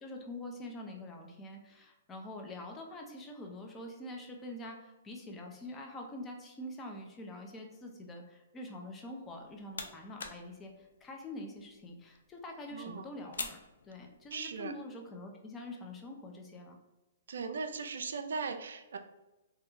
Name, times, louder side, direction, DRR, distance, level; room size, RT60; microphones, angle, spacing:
voice 1, 0.0-13.6 13.9-16.8, left 1 dB, 15° left, 1 dB, 0.4 m, -45 dB
sound 1, 9.2-14.5, left 4 dB, 85° left, 0.3 m, -47 dB
voice 2, 12.7-13.1 14.3-14.7 17.3-19.0, right 5 dB, 75° right, 7 dB, 0.3 m, -38 dB
2.3 x 2.2 x 2.9 m, 1.0 s
hypercardioid pair, 145°, 0 cm